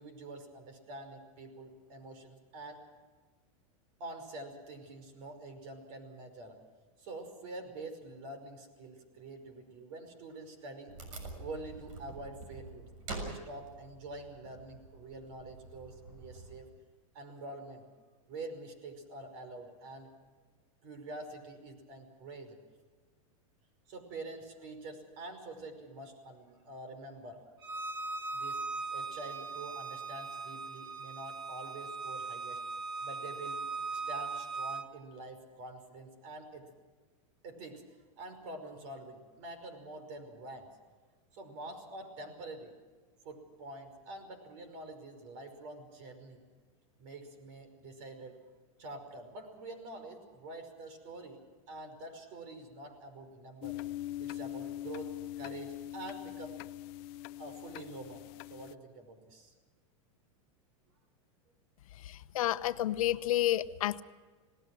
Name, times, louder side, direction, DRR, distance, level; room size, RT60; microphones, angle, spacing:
voice 1, 0.0-2.8 4.0-6.6 7.0-11.0 11.4-12.9 13.2-16.7 17.1-17.9 18.3-20.1 20.8-22.6 23.9-27.4 28.3-28.6 28.9-32.6 33.0-33.6 33.9-36.8 37.4-37.8 38.2-40.7 41.3-42.7 43.2-46.4 47.0-48.4 48.8-51.4 51.7-53.9 54.2-56.6 57.4-59.5, right 2 dB, 55° right, 8 dB, 5.4 m, -46 dB
Wood, 10.9-16.6, right 2 dB, 75° right, 6.8 m, -46 dB
Bowed string instrument, 27.6-34.9, right 4 dB, 25° right, 1.3 m, -39 dB
sound 1, 53.6-58.7, left 14 dB, 50° left, 0.6 m, -42 dB
voice 2, 62.0-64.0, left 13 dB, 85° left, 13 dB, 0.9 m, -30 dB
28.0 x 18.5 x 6.3 m, 1.4 s
supercardioid pair, 140°, 17 cm